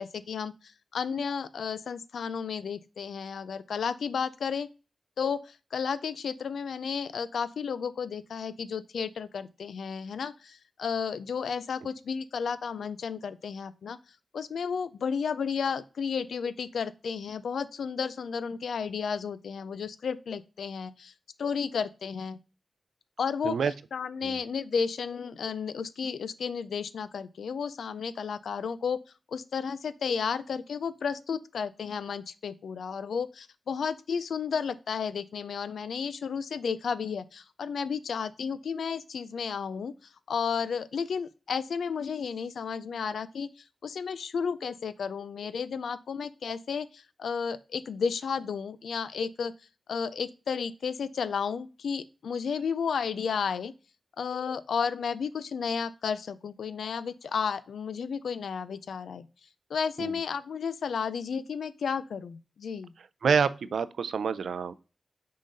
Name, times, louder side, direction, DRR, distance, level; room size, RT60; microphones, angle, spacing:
voice 1, 0.0-4.7 5.2-14.0 14.3-21.1 21.4-22.4 23.2-23.6 23.9-29.0 29.3-39.9 40.3-49.5 49.9-53.7 54.2-59.3 59.7-62.9, left 6 dB, 90° left, 0.4 m, -32 dB
voice 2, 63.2-64.7, right 6 dB, 85° right, 0.4 m, -27 dB
6.3 x 3.9 x 4.0 m
wide cardioid pair, 110°, 0 cm